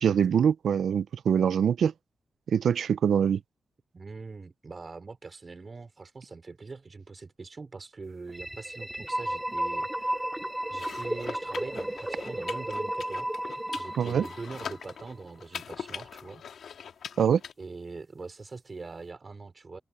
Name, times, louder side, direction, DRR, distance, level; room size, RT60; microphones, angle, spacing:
voice 1, 0.0-1.9 2.5-3.4 14.0-14.2 17.2-17.4, right 8 dB, 75° right, 0.5 m, -24 dB
voice 2, 3.9-10.3 10.7-13.3 13.7-16.4 17.6-19.8, right 4 dB, 35° right, 4.8 m, -43 dB
sound 1, 8.3-15.1, right 1 dB, 10° right, 2.8 m, -33 dB
sound 2, 10.7-17.5, left 7 dB, 75° left, 2.8 m, -42 dB
wide cardioid pair, 115°, 0 cm